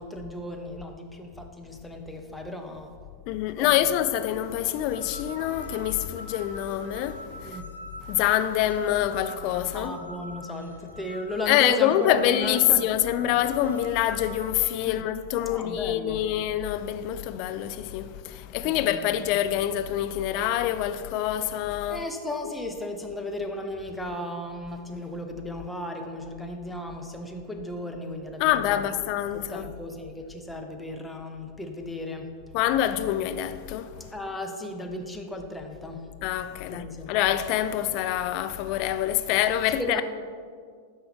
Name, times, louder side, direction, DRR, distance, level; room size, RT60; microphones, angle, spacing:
voice 1, 0.0-2.9 3.6-3.7 7.4-7.6 9.7-12.9 14.8-15.1 15.5-16.3 18.6-19.3 21.9-28.8 29.3-32.3 34.1-36.1 36.7-37.1 39.8-40.0, left 1 dB, 5° left, 0.7 m, -35 dB
voice 2, 3.3-7.6 8.0-10.0 11.5-22.0 28.4-29.7 32.5-34.1 36.2-40.0, left 12 dB, 45° left, 0.4 m, -26 dB
sound 1, 4.7-14.5, equal, 80° left, 0.7 m, -44 dB
11.5 x 4.7 x 3.4 m
figure-of-eight pair, 90°, 0 cm